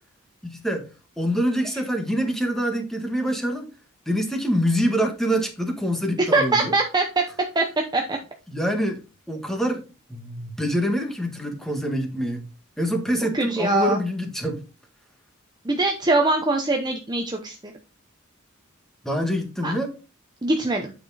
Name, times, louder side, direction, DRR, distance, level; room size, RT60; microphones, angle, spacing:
voice 1, 0.4-0.8 1.2-3.7 4.0-6.7 8.5-9.0 9.3-9.8 10.1-12.4 12.8-14.6 19.0-19.9, equal, ahead, 1.6 m, -25 dB
voice 2, 6.2-7.2 7.5-7.6 7.9-8.2 13.3-14.0 15.6-17.7 19.6-19.7 20.4-20.9, right 2 dB, 20° right, 0.8 m, -22 dB
8.8 x 4.9 x 4.1 m
head